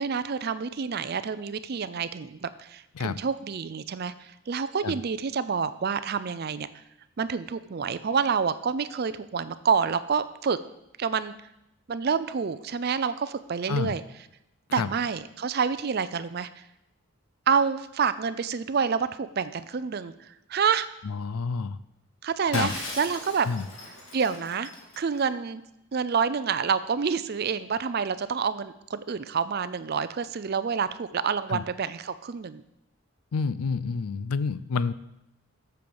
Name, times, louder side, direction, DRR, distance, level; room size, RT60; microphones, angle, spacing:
voice 1, 0.0-6.7 7.2-10.6 11.0-11.3 11.9-14.0 14.7-16.6 17.5-20.9 22.2-23.5 24.1-25.6 25.9-32.6, right 6 dB, 45° right, 14 dB, 0.4 m, -28 dB
voice 2, 21.0-21.8 22.5-22.7 23.5-23.7 31.5-31.6 33.3-34.9, left 5 dB, 85° left, 16 dB, 0.4 m, -28 dB
Shatter, 22.5-25.2, left 2 dB, 60° left, 2.0 m, -38 dB
7.8 x 7.0 x 7.0 m, 0.87 s
head